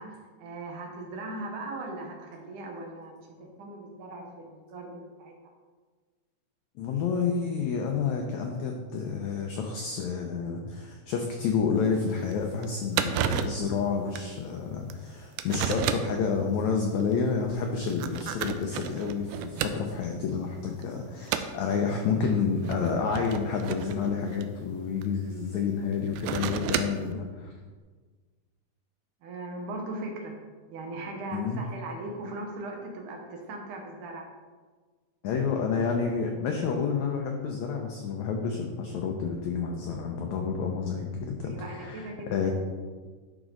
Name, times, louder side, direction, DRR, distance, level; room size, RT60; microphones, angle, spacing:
voice 1, 0.0-5.3 29.2-30.4 30.7-34.2 41.4-42.5, right 2 dB, 70° right, 1 dB, 2.3 m, -39 dB
voice 2, 6.8-27.5 31.3-31.6 35.2-42.5, left 5 dB, 90° left, 2 dB, 1.6 m, -29 dB
sound 1, 11.8-11.9 12.3-12.4 12.6-12.7 12.9-13.7 14.2-14.3 14.9-15.0 15.4-16.2 17.0-17.1 17.8-20.1 20.5-20.8 21.3-21.6 22.5-25.1 25.9-27.1, right 9 dB, 85° right, 1.8 m, -32 dB
11.0 x 5.2 x 3.8 m, 1.4 s
omnidirectional pair, 4.1 m